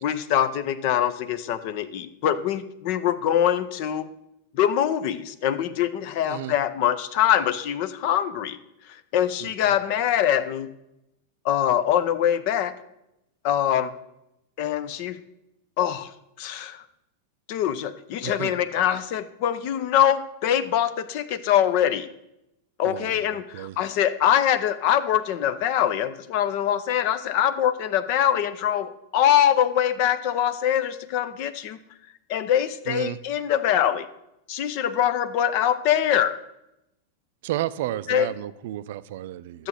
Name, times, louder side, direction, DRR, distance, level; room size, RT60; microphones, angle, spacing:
voice 1, 0.0-4.1 4.5-8.6 9.1-10.7 11.4-12.7 13.4-13.9 14.6-15.2 15.8-16.1 16.4-16.8 17.5-22.1 22.8-31.8 32.3-34.1 34.5-36.4 38.1-38.3 39.6-39.7, left 10 dB, 45° left, 11 dB, 0.8 m, -23 dB
voice 2, 9.4-9.7 18.2-18.6 22.8-23.8 32.9-33.2 37.4-39.7, right 14 dB, 55° right, 16 dB, 0.4 m, -32 dB
12.0 x 7.8 x 5.8 m, 0.86 s
figure-of-eight pair, 90°, 0 cm